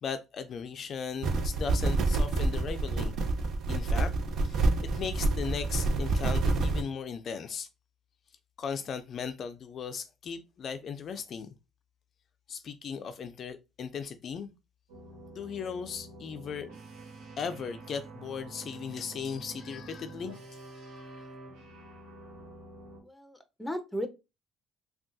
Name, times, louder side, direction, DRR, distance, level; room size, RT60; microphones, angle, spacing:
voice 1, 0.0-3.2 3.7-4.1 4.4-7.7 8.6-11.5 12.5-14.5 15.3-16.7 17.4-20.4 20.7-21.3, left 6 dB, 55° left, 0.4 m, -37 dB
sound 1, 1.2-6.8, right 3 dB, 65° right, 0.6 m, -28 dB
sound 2, 14.9-23.0, right 2 dB, 80° right, 1.2 m, -47 dB
voice 2, 23.0-24.1, equal, 5° left, 0.8 m, -36 dB
3.5 x 2.3 x 2.6 m
supercardioid pair, 75°, 0 cm